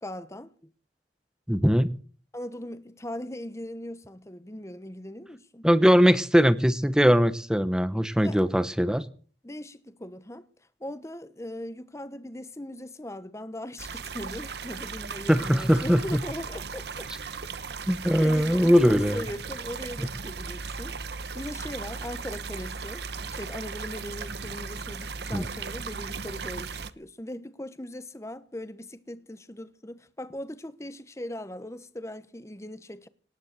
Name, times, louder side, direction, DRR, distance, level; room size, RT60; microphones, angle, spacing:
voice 1, 0.0-0.5 2.3-5.7 8.2-8.5 9.4-10.5 10.8-17.5 18.2-33.1, left 1 dB, 15° left, 1.1 m, -39 dB
voice 2, 1.5-1.9 5.6-9.1 15.3-16.2 17.9-19.2 25.3-25.5, equal, 5° right, 0.9 m, -21 dB
sound 1, 13.8-26.9, right 5 dB, 65° right, 1.0 m, -37 dB
19.0 x 10.5 x 6.8 m
head